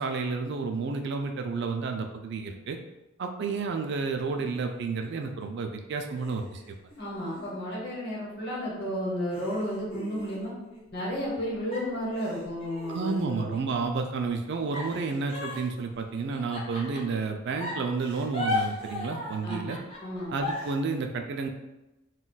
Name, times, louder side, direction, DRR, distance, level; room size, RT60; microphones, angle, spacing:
voice 1, 0.0-2.8 3.2-6.8 12.9-19.8 20.3-21.5, right 4 dB, 50° right, 4 dB, 0.3 m, -31 dB
sound 1, 4.1-5.5 6.2-8.4 8.8-8.9 9.3-11.4 11.7-13.7 14.7-17.2 17.6-20.7, left 2 dB, 25° left, 0.5 m, -37 dB
voice 2, 7.0-10.5 10.9-13.5 19.4-19.7 20.0-20.3, equal, 50° left, -5 dB, 1.0 m, -32 dB
2.2 x 2.2 x 3.9 m, 1.0 s
head